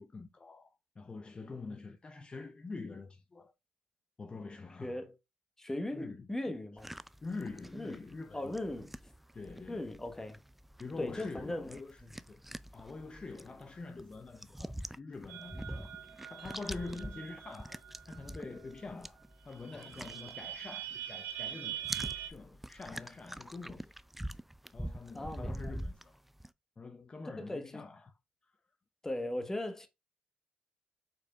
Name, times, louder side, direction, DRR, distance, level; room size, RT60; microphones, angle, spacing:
voice 1, 0.0-3.5 4.2-5.0 5.9-6.6 7.2-8.5 9.3-9.9 10.8-12.0 12.3-12.4 12.7-16.0 16.3-21.9 22.2-23.9 24.7-26.2 26.8-28.1 28.4-28.5, left 3 dB, 35° left, 0.6 m, -45 dB
voice 2, 4.8-5.1 5.6-6.9 7.7-8.0 8.3-8.9 9.7-10.4 11.0-11.7 12.0-12.1 19.7-19.9 25.1-25.7 27.4-27.8 29.0-29.9, left 1 dB, 15° left, 1.1 m, -38 dB
sound 1, 6.8-21.0 21.3-26.5, right 1 dB, 5° right, 0.3 m, -45 dB
sound 2, 15.3-18.8 19.2-19.3 19.5-22.3, right 12 dB, 80° right, 1.0 m, -44 dB
5.1 x 4.2 x 2.3 m
supercardioid pair, 60°, 3 cm